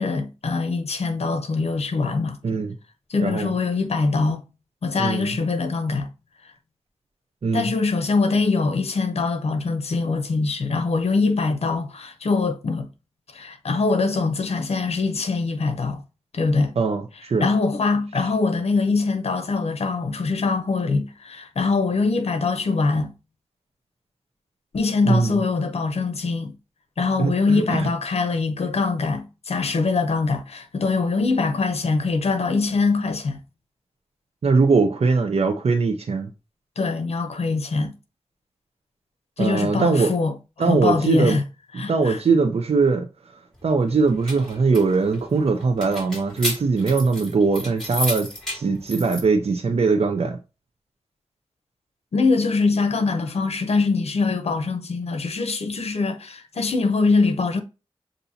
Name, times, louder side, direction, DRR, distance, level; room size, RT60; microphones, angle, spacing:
voice 1, 0.0-2.4 3.1-4.4 4.8-6.1 7.5-12.9 13.3-16.0 16.3-16.7 17.4-23.1 24.7-26.5 27.0-33.4 36.8-37.9 39.4-41.4 41.8-42.2 52.1-57.6, left 4 dB, 85° left, 0.6 m, -23 dB
voice 2, 3.2-3.5 5.0-5.3 7.4-7.6 16.8-17.5 25.1-25.3 27.2-27.8 34.4-36.3 39.4-40.1 40.6-41.4 41.9-43.0 43.6-48.3 48.5-50.4, right 4 dB, 80° right, 0.6 m, -21 dB
sound 1, 43.9-49.2, left 1 dB, 5° left, 2.6 m, -32 dB
6.9 x 2.7 x 2.7 m
wide cardioid pair, 55°, 10 cm